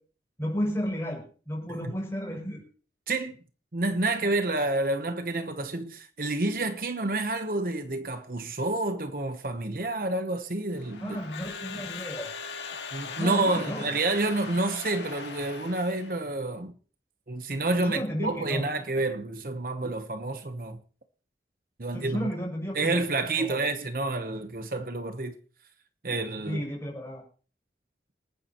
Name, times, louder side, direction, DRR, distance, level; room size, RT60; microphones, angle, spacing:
voice 1, 0.4-2.6 11.0-12.3 13.2-13.9 17.8-18.6 21.9-23.0 23.4-23.6 26.4-27.2, equal, 15° left, 6.5 m, -33 dB
voice 2, 3.1-3.4 3.7-11.2 12.9-16.7 17.3-20.8 21.8-22.3 22.7-25.4 26.0-26.6, right 2 dB, 50° right, 1.0 m, -29 dB
Crowd / Alarm, 10.8-16.3, left 5 dB, 85° left, 2.0 m, -40 dB
27.0 x 9.7 x 3.0 m
head